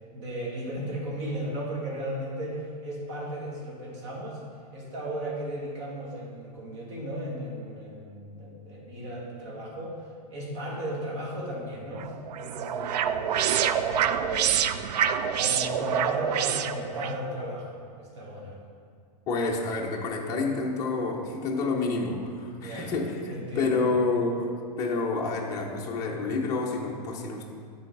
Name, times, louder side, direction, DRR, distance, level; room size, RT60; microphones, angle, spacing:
voice 1, 0.1-4.4 4.7-14.7 15.4-18.6 22.6-22.9 23.3-23.9, right 1 dB, 45° right, -3 dB, 1.9 m, -35 dB
sound 1, 12.0-17.2, right 8 dB, 80° right, 0.4 m, -26 dB
voice 2, 19.3-24.5 24.8-27.5, left 3 dB, 15° left, -3 dB, 0.6 m, -28 dB
9.5 x 4.0 x 4.6 m, 2.1 s
supercardioid pair, 170°, 21 cm